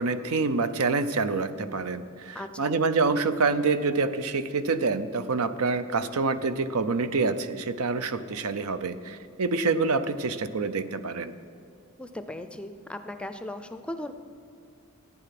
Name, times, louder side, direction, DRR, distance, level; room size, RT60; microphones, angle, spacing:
voice 1, 0.0-11.3, right 4 dB, 80° right, 12 dB, 0.7 m, -27 dB
voice 2, 2.3-2.7 12.0-14.1, left 1 dB, 5° left, 9 dB, 0.5 m, -37 dB
15.0 x 9.2 x 5.9 m, 2.4 s
head